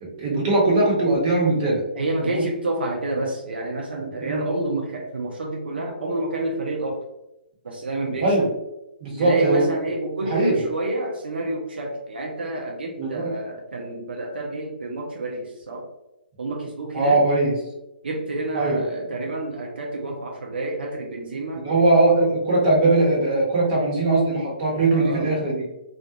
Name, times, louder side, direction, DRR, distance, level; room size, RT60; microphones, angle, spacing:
voice 1, 0.0-1.8 2.2-2.4 4.2-4.4 8.2-8.5 9.0-9.6 10.2-10.6 13.0-13.3 16.9-17.5 18.5-18.8 21.6-25.7, right 2 dB, 35° right, -4 dB, 1.0 m, -20 dB
voice 2, 1.9-7.0 7.6-8.3 9.2-15.9 16.4-17.2 18.0-21.7 24.9-25.4, right 2 dB, 80° right, 0 dB, 0.5 m, -29 dB
2.4 x 2.2 x 2.7 m, 0.94 s
hypercardioid pair, 150°, 5 cm